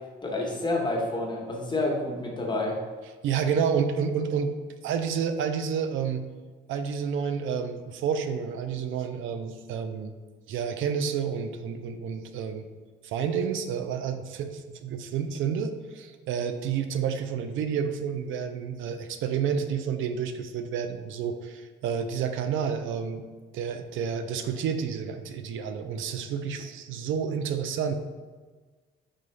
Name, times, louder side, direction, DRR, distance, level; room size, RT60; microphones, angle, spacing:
voice 1, 0.2-2.8, left 2 dB, 25° left, -1 dB, 1.0 m, -29 dB
voice 2, 3.2-4.5 4.8-6.2 6.7-10.2 10.5-12.7 13.0-23.2 23.5-27.9, right 7 dB, 80° right, 8 dB, 0.4 m, -30 dB
3.9 x 3.8 x 3.2 m, 1.4 s
cardioid pair, 90°, 20 cm